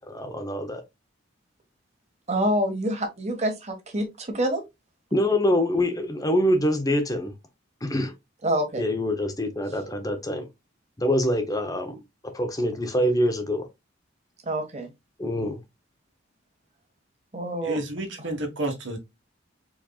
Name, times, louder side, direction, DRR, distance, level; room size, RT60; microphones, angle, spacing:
voice 1, 0.1-0.8 5.1-7.3 7.8-8.1 8.8-10.5 11.0-12.0 12.3-13.7 15.2-15.6, left 1 dB, 20° left, 0.8 m, -25 dB
voice 2, 2.3-4.6 8.4-8.8 14.4-14.9 17.3-17.8, right 1 dB, 35° right, 1.6 m, -26 dB
voice 3, 17.6-19.0, right 1 dB, 70° right, 1.7 m, -30 dB
4.8 x 4.2 x 2.4 m
head